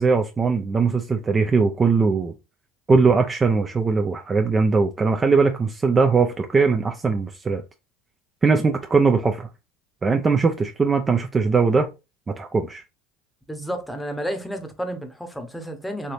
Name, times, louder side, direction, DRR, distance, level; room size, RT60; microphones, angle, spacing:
voice 1, 0.0-2.3 2.9-7.6 8.4-9.5 10.0-11.9 12.4-12.8, right 4 dB, 25° right, 0.3 m, -20 dB
voice 2, 13.5-16.1, equal, 5° left, 0.8 m, -31 dB
3.3 x 2.7 x 2.5 m
supercardioid pair, 100°, 0 cm